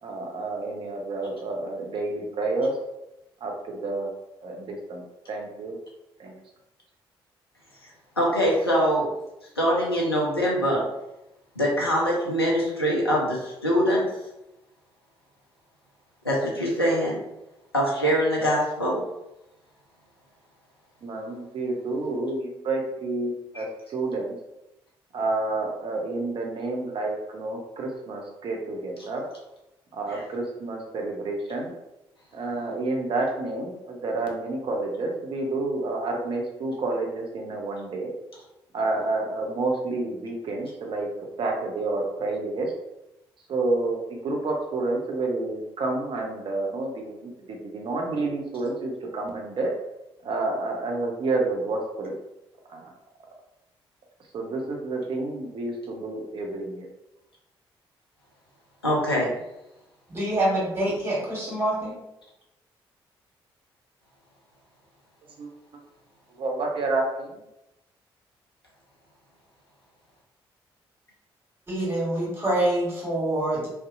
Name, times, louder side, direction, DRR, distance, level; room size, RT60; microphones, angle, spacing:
voice 1, 0.0-2.8 3.4-4.1 4.4-5.0 5.3-5.8 6.2-6.3 21.0-24.4 25.1-29.3 29.9-31.7 32.3-38.1 38.7-41.1 41.4-42.7 43.5-49.7 50.2-52.1 52.7-52.9 54.3-56.9 65.4-65.5 66.4-67.4, right 2 dB, 45° right, 1 dB, 0.6 m, -29 dB
voice 2, 8.2-9.1 9.6-10.8 11.6-14.0 16.2-17.2 17.7-19.0 30.1-30.2 58.8-59.3, equal, 90° left, -4 dB, 0.4 m, -23 dB
voice 3, 60.1-61.9 71.7-73.7, right 1 dB, 20° right, -6 dB, 1.4 m, -26 dB
2.6 x 2.0 x 2.5 m, 0.91 s
figure-of-eight pair, 40°, 12 cm